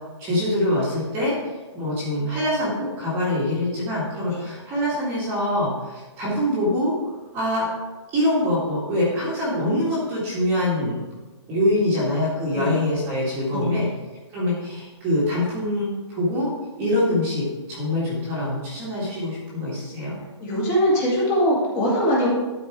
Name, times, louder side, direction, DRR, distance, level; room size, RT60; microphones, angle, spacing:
voice 1, 0.2-1.3 1.7-6.9 7.3-7.7 8.1-11.0 11.5-13.9 14.3-16.5 16.8-20.2, left 1 dB, 15° right, -7 dB, 1.8 m, -24 dB
voice 2, 13.5-13.9 20.4-22.3, equal, 20° left, -6 dB, 2.4 m, -22 dB
12.0 x 4.7 x 4.7 m, 1.2 s
hypercardioid pair, 170°, 15 cm